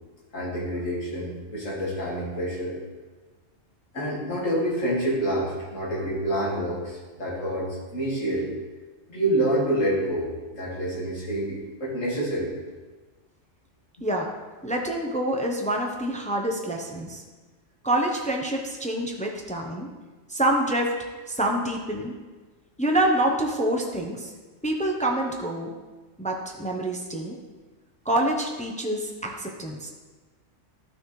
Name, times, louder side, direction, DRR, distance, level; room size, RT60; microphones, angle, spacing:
voice 1, 0.3-2.8 3.9-8.5 9.1-12.5, right 1 dB, 80° left, -5 dB, 2.5 m, -27 dB
voice 2, 14.6-17.2 17.8-19.9 20.3-20.9 21.3-22.1 22.8-24.3 24.6-25.7 26.2-27.4 28.0-29.9, right 1 dB, 10° left, 1 dB, 0.6 m, -26 dB
12.0 x 6.2 x 3.2 m, 1.3 s
omnidirectional pair, 1.3 m